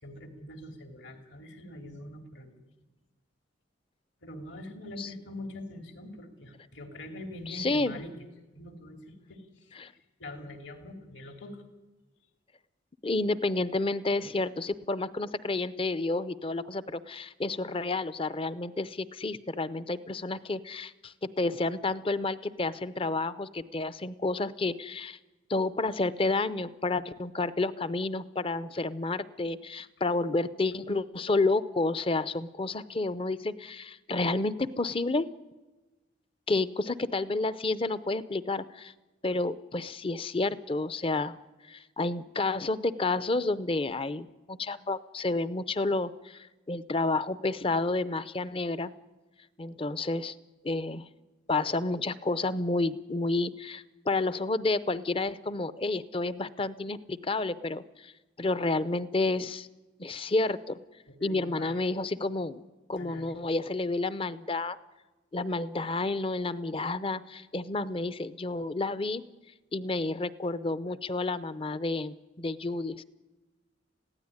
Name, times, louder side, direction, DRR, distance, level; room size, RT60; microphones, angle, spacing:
voice 1, 0.0-2.6 4.2-8.3 8.5-9.8 10.2-11.6 61.1-61.8 62.9-63.3, left 1 dB, 70° left, 4 dB, 2.8 m, -44 dB
voice 2, 7.5-8.0 9.8-9.9 13.0-25.2 25.5-35.3 36.5-38.9 39.2-41.4 41.7-48.9 49.6-50.3 50.6-51.1 51.5-58.1 58.4-59.7 60.0-60.8 61.2-62.6 62.9-64.8 65.3-69.2 69.7-73.0, left 2 dB, 30° left, 15 dB, 0.6 m, -30 dB
22.5 x 16.0 x 9.8 m, 1.2 s
head